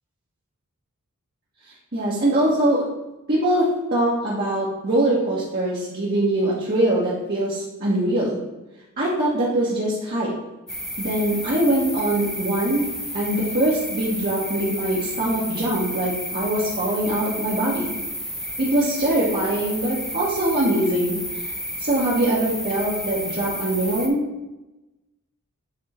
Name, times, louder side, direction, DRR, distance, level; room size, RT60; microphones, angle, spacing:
voice 1, 1.9-2.8 3.3-8.4 9.0-10.3 11.0-12.9 13.1-17.9 18.6-21.5 21.8-24.2, right 1 dB, 45° right, -8 dB, 1.4 m, -22 dB
sound 1, 10.7-24.1, equal, ahead, 0.8 m, -31 dB
8.4 x 3.7 x 4.3 m, 1.0 s
head